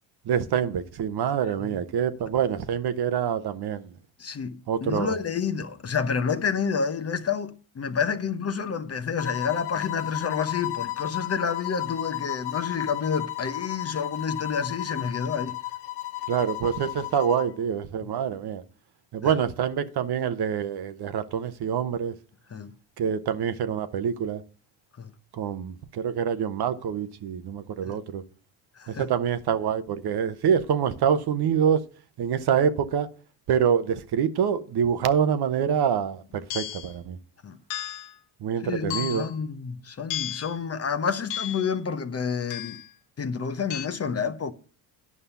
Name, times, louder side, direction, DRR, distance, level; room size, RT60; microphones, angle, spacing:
voice 1, 0.3-3.9 4.7-5.2 16.3-18.6 19.1-22.1 23.0-24.4 25.4-28.2 29.0-31.8 32.2-33.1 33.5-36.2 36.5-37.2 38.4-39.3, right 8 dB, 50° right, 1.0 m, -26 dB
voice 2, 4.2-15.5 18.0-18.1 19.2-19.3 22.5-22.7 25.0-25.1 27.9-28.0 28.8-29.1 37.4-37.6 38.6-42.8 43.2-44.5, left 6 dB, 30° left, 0.8 m, -29 dB
sound 1, 9.2-17.5, left 17 dB, 55° left, 1.1 m, -33 dB
sound 2, 36.5-36.9 37.7-38.1 38.9-39.4 40.1-40.5 41.3-41.7 42.5-42.9 43.7-43.9, left 11 dB, 85° left, 1.1 m, -33 dB
9.6 x 5.5 x 6.9 m
supercardioid pair, 80°, 49 cm